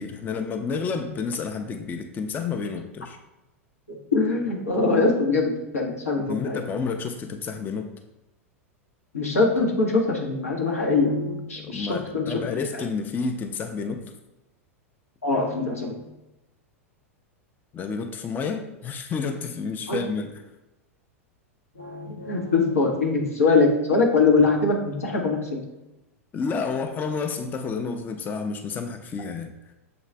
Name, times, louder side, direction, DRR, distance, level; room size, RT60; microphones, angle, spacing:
voice 1, 0.0-3.2 6.3-7.9 11.6-14.1 17.7-20.4 26.3-29.5, left 5 dB, 25° left, 5 dB, 0.4 m, -30 dB
voice 2, 3.9-6.6 9.1-12.4 12.7-12.8 15.2-16.0 19.9-20.0 21.8-25.6, left 3 dB, 85° left, -1 dB, 1.0 m, -23 dB
6.8 x 2.4 x 3.2 m, 0.98 s
figure-of-eight pair, 90°, 8 cm